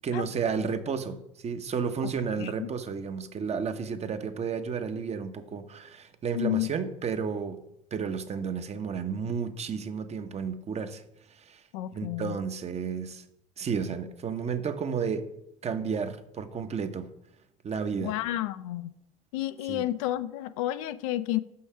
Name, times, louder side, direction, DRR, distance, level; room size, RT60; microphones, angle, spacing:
voice 1, 0.0-1.2 1.4-7.6 7.9-11.0 11.5-11.6 11.9-13.2 13.6-15.2 15.6-17.1 17.6-18.1 19.7-19.8, right 6 dB, 40° right, 0.9 m, -32 dB
voice 2, 2.4-2.7 6.3-6.7 11.7-12.4 18.0-18.9 19.3-21.4, left 14 dB, 75° left, 0.4 m, -31 dB
6.3 x 5.6 x 5.5 m
hypercardioid pair, 60°, 17 cm